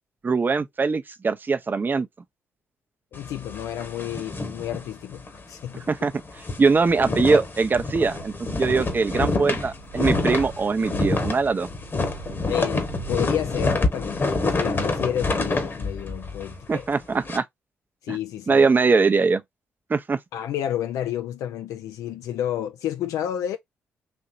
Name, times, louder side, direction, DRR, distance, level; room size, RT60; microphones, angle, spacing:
voice 1, 0.2-2.1 5.9-6.1 6.6-11.7 16.7-17.4 18.1-18.2 18.5-19.4 19.9-20.2, right 4 dB, 35° right, 0.6 m, -22 dB
voice 2, 3.1-6.1 12.5-16.6 18.0-18.7 20.3-23.6, left 11 dB, 75° left, 0.4 m, -30 dB
sound 1, 3.1-5.4 5.7-5.9 6.2-17.4, left 3 dB, 40° left, 1.2 m, -27 dB
sound 2, 6.7-13.7, right 10 dB, 90° right, 1.0 m, -45 dB
4.3 x 2.7 x 2.5 m
hypercardioid pair, 45°, 6 cm